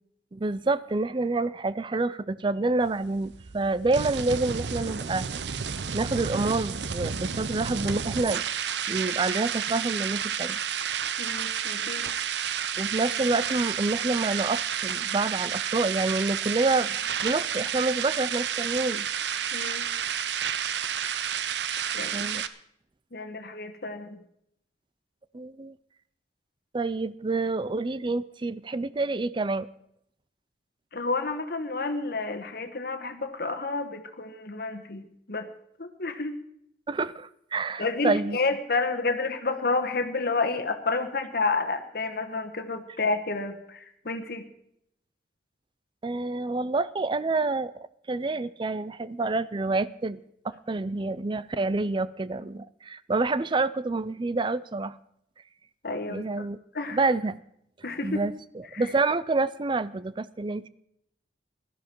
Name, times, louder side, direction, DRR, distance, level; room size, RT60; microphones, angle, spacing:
voice 1, 0.3-5.3 5.9-8.4 8.9-10.6 12.8-17.0 17.2-19.1 22.1-22.4 25.3-25.7 26.7-29.7 36.9-38.4 46.0-47.7 48.1-50.2 50.4-55.0 56.1-56.6 56.9-57.4 58.0-60.7, right 3 dB, 25° right, 17 dB, 0.5 m, -28 dB
sound 1, 2.8-22.5, right 8 dB, 75° right, 0.7 m, -31 dB
voice 2, 11.2-12.1 19.5-19.9 21.9-22.3 23.1-24.2 30.9-35.5 35.8-36.4 37.8-44.5 55.8-56.5 56.7-57.0 57.8-58.2 58.7-58.9, left 3 dB, 60° left, 7 dB, 1.4 m, -30 dB
16.5 x 12.5 x 4.6 m, 0.72 s
head